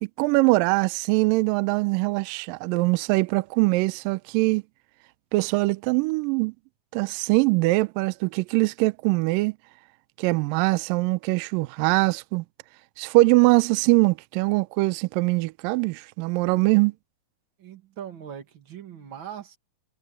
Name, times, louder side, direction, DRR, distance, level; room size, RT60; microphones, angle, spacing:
voice 1, 0.0-4.6 5.3-6.5 6.9-9.6 10.2-12.4 13.0-16.9, right 23 dB, 80° right, 2.1 m, -22 dB
voice 2, 17.6-19.6, right 9 dB, 40° right, 2.2 m, -40 dB
omnidirectional pair, 4.3 m